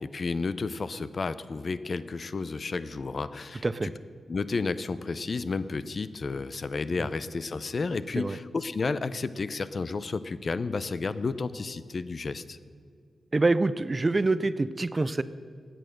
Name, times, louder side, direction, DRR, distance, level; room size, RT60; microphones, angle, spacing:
voice 1, 0.0-3.9 4.3-12.6, left 4 dB, 40° left, 14 dB, 0.5 m, -32 dB
voice 2, 13.3-15.2, right 3 dB, 25° right, 15 dB, 0.3 m, -26 dB
16.0 x 9.2 x 6.4 m, 2.2 s
wide cardioid pair, 175°, 0 cm